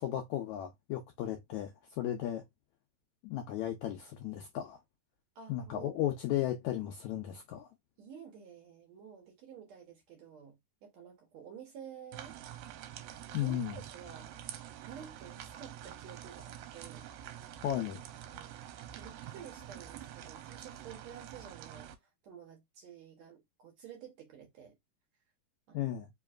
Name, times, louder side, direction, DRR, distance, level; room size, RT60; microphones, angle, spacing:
voice 1, 0.0-2.4 3.2-4.8 5.5-7.7 13.3-13.8 17.6-18.0 25.7-26.1, left 12 dB, 80° left, 1.7 m, -35 dB
voice 2, 5.4-6.0 8.0-12.4 13.3-14.4 14.8-17.1 18.3-18.7 19.0-24.8 25.7-26.0, right 7 dB, 65° right, 1.9 m, -51 dB
sound 1, 12.1-22.0, right 11 dB, 85° right, 2.3 m, -47 dB
5.1 x 2.9 x 2.4 m
omnidirectional pair, 4.0 m